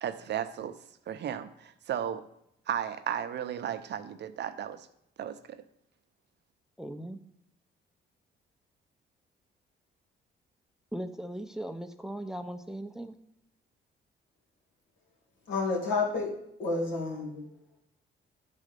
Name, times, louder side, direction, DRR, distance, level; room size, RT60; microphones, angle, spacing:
voice 1, 0.0-0.8 1.1-2.2 2.7-4.9 5.2-5.6, right 9 dB, 60° right, 11 dB, 0.6 m, -34 dB
voice 2, 6.8-7.2 10.9-13.1, right 1 dB, ahead, 9 dB, 0.6 m, -38 dB
voice 3, 15.5-16.3 16.6-17.4, left 3 dB, 90° left, -1 dB, 2.3 m, -30 dB
10.5 x 4.2 x 5.2 m, 0.77 s
cardioid pair, 90°, 20 cm